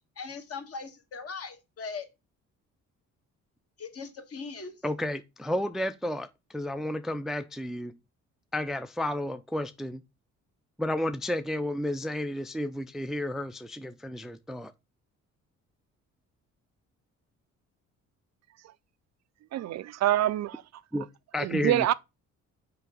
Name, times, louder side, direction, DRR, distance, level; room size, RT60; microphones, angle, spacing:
voice 1, 0.2-2.1 3.8-4.7, left 5 dB, 50° left, 1.6 m, -39 dB
voice 2, 4.8-7.9 8.5-10.0 10.8-14.7 20.9-21.1 21.3-21.9, left 1 dB, ahead, 0.4 m, -32 dB
voice 3, 19.5-20.6 21.4-21.9, right 13 dB, 60° right, 0.4 m, -26 dB
5.7 x 5.2 x 3.8 m
cardioid pair, 90°, 30 cm